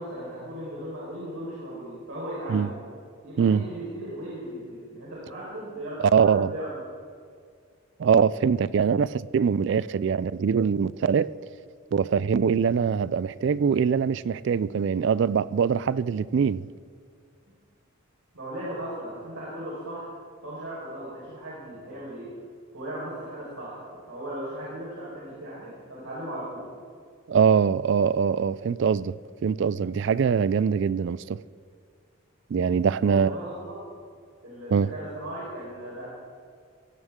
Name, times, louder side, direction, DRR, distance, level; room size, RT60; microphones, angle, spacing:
voice 1, 0.0-2.8 3.2-6.7 17.5-17.6 18.3-20.1 20.4-22.3 22.7-26.7 33.0-33.8 34.4-36.1, right 1 dB, 90° right, 4.5 m, -37 dB
voice 2, 6.1-6.5 8.0-11.3 11.9-16.7 27.3-29.2 29.4-31.4 32.5-33.3 34.7-34.9, right 6 dB, 55° right, 0.3 m, -23 dB
17.5 x 16.0 x 3.7 m
head